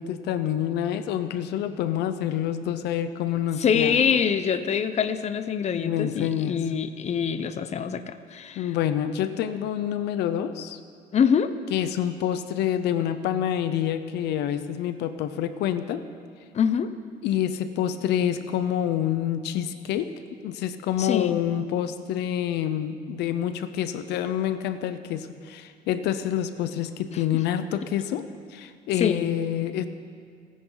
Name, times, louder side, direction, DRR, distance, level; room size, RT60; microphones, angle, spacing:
voice 1, 0.0-4.0 5.7-6.6 8.6-10.8 11.7-16.1 17.2-20.1 20.4-29.9, left 10 dB, 80° left, 11 dB, 0.8 m, -27 dB
voice 2, 3.6-8.7 11.1-11.5 16.5-16.9 21.0-21.4 28.1-28.2 29.0-29.3, left 7 dB, 40° left, 11 dB, 0.8 m, -25 dB
28.5 x 10.5 x 4.0 m, 2.1 s
cardioid pair, 110°, 17 cm